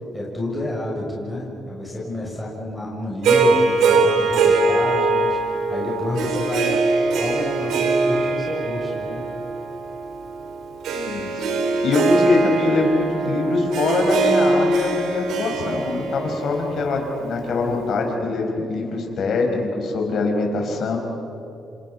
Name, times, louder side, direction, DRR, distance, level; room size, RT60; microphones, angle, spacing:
voice 1, 0.1-9.3, left 1 dB, 5° left, -5 dB, 6.9 m, -29 dB
Harp, 3.2-17.6, right 3 dB, 80° right, 3.1 m, -22 dB
voice 2, 11.0-11.4 11.8-21.0, left 3 dB, 65° left, 2 dB, 5.2 m, -23 dB
29.0 x 27.0 x 5.5 m, 2.9 s
cardioid pair, 90°, 0 cm